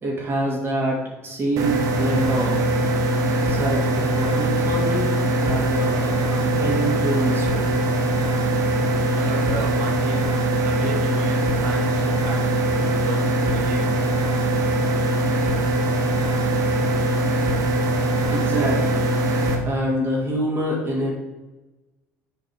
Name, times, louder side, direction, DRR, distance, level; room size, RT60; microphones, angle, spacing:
voice 1, 0.0-2.6 3.4-5.1 5.4-7.8 18.3-19.1 19.6-21.2, right 1 dB, 30° right, -3 dB, 2.8 m, -25 dB
sound 1, 1.6-19.5, right 1 dB, 55° right, 1.4 m, -22 dB
voice 2, 9.1-10.3 10.6-14.0, right 3 dB, 75° right, 1 dB, 1.7 m, -33 dB
8.2 x 4.5 x 5.0 m, 1.1 s
hypercardioid pair, 70°, 7 cm